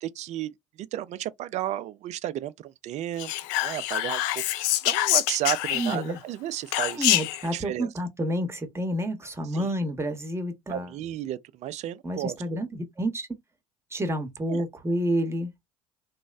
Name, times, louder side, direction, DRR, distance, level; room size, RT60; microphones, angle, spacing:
voice 1, 0.0-3.3 3.6-7.1 7.5-7.9 9.5-9.7 10.7-12.4 14.5-14.6, right 12 dB, 45° right, 0.4 m, -33 dB
Whispering, 3.2-6.2 6.7-7.5, left 15 dB, 65° left, 0.4 m, -26 dB
voice 2, 5.7-6.2 7.0-10.9 12.0-13.3 13.9-15.5, equal, 15° right, 0.9 m, -29 dB
3.0 x 2.0 x 2.4 m
hypercardioid pair, 70°, 17 cm